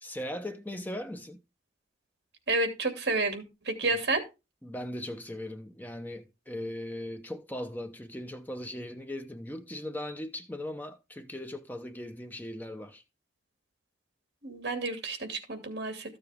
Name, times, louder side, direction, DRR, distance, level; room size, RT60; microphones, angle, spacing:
voice 1, 0.0-1.4 3.8-4.0 4.6-13.0, left 1 dB, 10° left, 0.7 m, -39 dB
voice 2, 2.5-4.3 14.4-16.2, right 2 dB, 60° right, 2.5 m, -30 dB
14.0 x 7.0 x 3.5 m
head